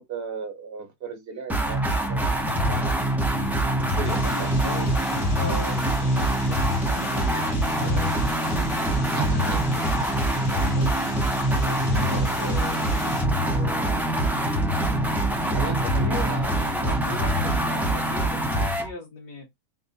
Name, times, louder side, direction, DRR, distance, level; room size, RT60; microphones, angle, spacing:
voice 1, 0.0-3.1 3.8-4.5 9.1-9.6 11.9-12.4 15.3-16.8 17.1-17.6, right 5 dB, 40° right, 1.1 m, -35 dB
sound 1, 1.5-18.9, right 1 dB, ahead, 0.4 m, -24 dB
sound 2, 4.0-13.3, left 5 dB, 50° left, 0.6 m, -41 dB
voice 2, 4.1-14.4 14.7-19.5, left 3 dB, 75° left, 1.8 m, -39 dB
3.8 x 2.4 x 3.9 m
omnidirectional pair, 1.7 m